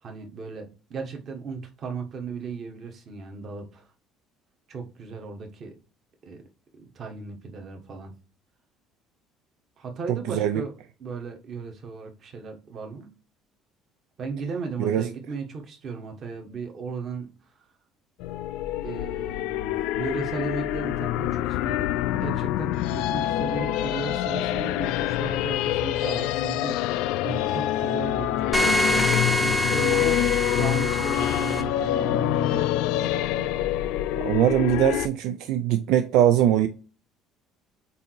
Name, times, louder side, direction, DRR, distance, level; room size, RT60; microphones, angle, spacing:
voice 1, 0.0-3.9 4.7-5.7 6.2-6.4 6.8-8.1 9.8-10.7 11.0-13.1 14.2-17.3 17.6-17.7 18.8-30.2 30.5-32.7, right 4 dB, 30° right, 1.3 m, -36 dB
voice 2, 10.3-10.7 14.8-15.1 34.1-36.7, right 11 dB, 65° right, 0.5 m, -22 dB
sound 1, 18.2-35.1, left 13 dB, 75° left, 0.4 m, -26 dB
sound 2, 28.5-31.6, equal, 5° left, 0.7 m, -25 dB
8.3 x 2.8 x 4.5 m
cardioid pair, 180°, 0 cm